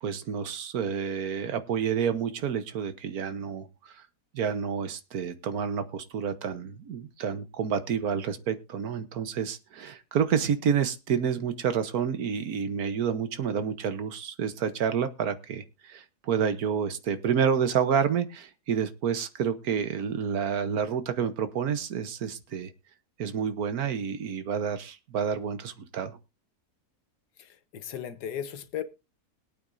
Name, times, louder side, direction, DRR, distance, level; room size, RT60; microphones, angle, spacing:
voice 1, 0.0-4.0 4.3-22.7 23.2-26.2, right 7 dB, 70° right, 1.5 m, -29 dB
voice 2, 27.4-28.8, left 9 dB, 90° left, 1.6 m, -36 dB
22.0 x 8.6 x 2.6 m
omnidirectional pair, 1.7 m